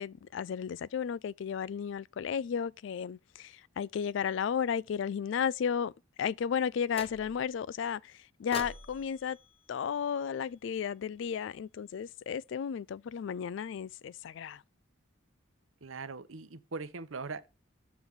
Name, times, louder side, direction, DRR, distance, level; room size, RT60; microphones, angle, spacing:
voice 1, 0.0-5.9 6.2-8.0 8.4-9.4 9.7-14.6, left 7 dB, 65° left, 0.3 m, -33 dB
sound 1, 6.9-7.6 8.5-10.8, left 3 dB, 30° left, 0.8 m, -46 dB
voice 2, 15.8-17.5, right 4 dB, 80° right, 0.9 m, -40 dB
7.4 x 7.1 x 3.6 m
head